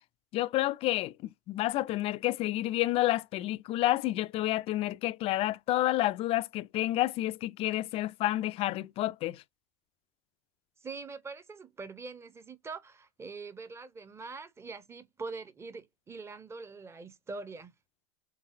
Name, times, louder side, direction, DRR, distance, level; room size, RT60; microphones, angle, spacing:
voice 1, 0.3-9.4, left 16 dB, 35° left, 0.4 m, -29 dB
voice 2, 10.8-17.7, right 4 dB, 15° right, 0.7 m, -43 dB
4.0 x 3.4 x 2.6 m
hypercardioid pair, 95°, 18 cm